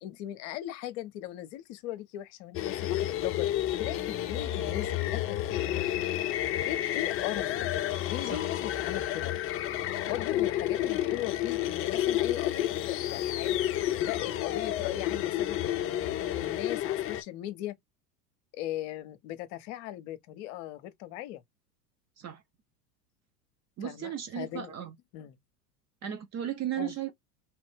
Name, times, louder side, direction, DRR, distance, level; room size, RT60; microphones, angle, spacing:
voice 1, 0.0-3.5 3.8-5.9 6.7-7.7 8.1-9.3 10.1-13.6 14.0-17.8 18.5-21.4 23.8-24.8 25.1-25.4 26.8-26.9, left 13 dB, 50° left, 0.8 m, -38 dB
sound 1, 2.5-17.2, left 12 dB, 30° left, 0.4 m, -30 dB
voice 2, 23.8-24.9 26.0-27.1, right 10 dB, 35° right, 0.8 m, -35 dB
3.0 x 2.5 x 3.4 m
hypercardioid pair, 85°, 48 cm